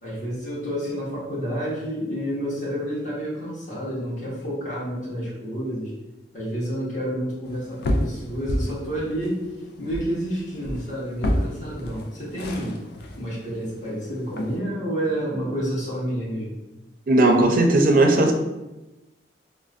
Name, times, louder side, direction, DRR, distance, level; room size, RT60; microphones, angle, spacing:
voice 1, 0.0-5.9 6.3-9.4 9.8-12.7 13.1-16.5, equal, 45° left, -8 dB, 1.2 m, -29 dB
sound 1, 7.5-14.6, equal, 60° left, 0.4 m, -31 dB
voice 2, 17.1-18.3, right 2 dB, 50° right, 4 dB, 0.5 m, -17 dB
5.1 x 2.1 x 2.4 m, 1.0 s
head